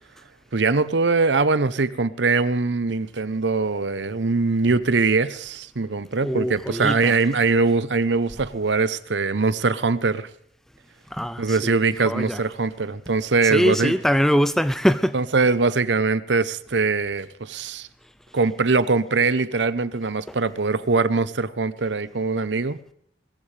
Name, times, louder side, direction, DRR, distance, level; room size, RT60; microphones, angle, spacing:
voice 1, 0.5-10.3 11.4-13.9 15.1-17.9 18.3-22.8, right 4 dB, 80° right, 0.8 m, -22 dB
voice 2, 6.2-7.1 11.1-12.4 13.5-15.1, equal, ahead, 0.5 m, -23 dB
21.5 x 14.5 x 3.4 m
head